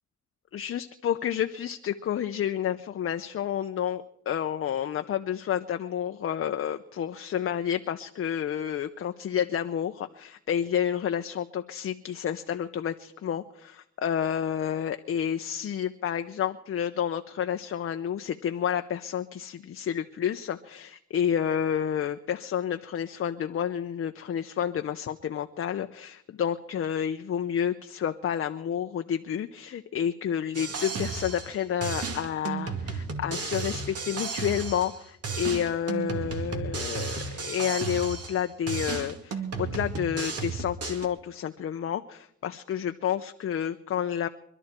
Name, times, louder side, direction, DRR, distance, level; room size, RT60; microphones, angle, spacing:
voice 1, 0.5-44.3, left 9 dB, 45° left, 7 dB, 0.7 m, -30 dB
sound 1, 30.5-31.6 31.8-35.0 35.2-38.4 38.7-41.1, right 4 dB, 50° right, 2.2 m, -33 dB
24.5 x 12.0 x 4.4 m, 0.73 s
cardioid pair, 90°, 30 cm